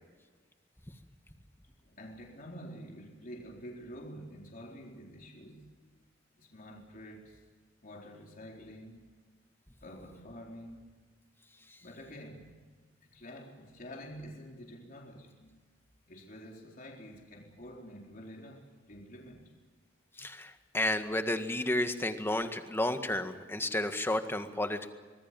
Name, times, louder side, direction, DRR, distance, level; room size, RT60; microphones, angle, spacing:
voice 1, 1.8-5.9 6.4-7.4 7.8-9.1 9.8-10.9 11.8-12.6 13.0-15.6 16.1-19.6, equal, 45° left, 0 dB, 4.3 m, -48 dB
voice 2, 20.2-24.9, left 1 dB, 10° left, 7 dB, 1.8 m, -32 dB
25.5 x 20.5 x 7.7 m, 1.4 s
head